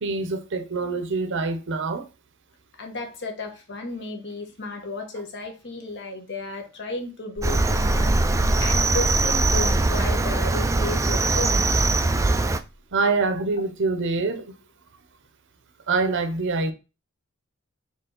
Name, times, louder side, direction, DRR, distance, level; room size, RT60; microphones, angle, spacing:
voice 1, 0.0-2.1 12.9-14.5 15.9-16.7, right 3 dB, 55° right, 0.7 m, -25 dB
voice 2, 2.8-11.7, left 2 dB, 55° left, 1.1 m, -33 dB
sound 1, 7.4-12.0, equal, 10° left, 1.4 m, -29 dB
Cricket, 7.4-12.6, right 3 dB, 15° right, 0.3 m, -22 dB
4.5 x 3.0 x 3.8 m
head